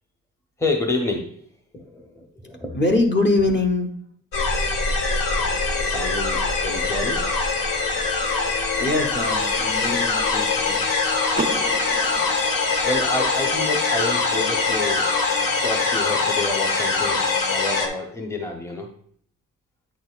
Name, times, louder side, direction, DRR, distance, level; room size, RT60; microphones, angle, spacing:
voice 1, 0.6-1.3 1.7-2.7 5.4-7.2 12.8-15.1 15.6-17.2 17.5-18.9, left 2 dB, 10° left, 3 dB, 0.8 m, -28 dB
voice 2, 2.4-3.9 8.8-10.9, left 2 dB, 35° left, 3 dB, 1.0 m, -23 dB
sound 1, 4.3-17.9, left 4 dB, 75° left, 1.3 m, -23 dB
Car / Door, 11.3-13.3, right 4 dB, 20° right, 0.3 m, -33 dB
8.8 x 6.2 x 2.4 m, 0.64 s
wide cardioid pair, 150°, 34 cm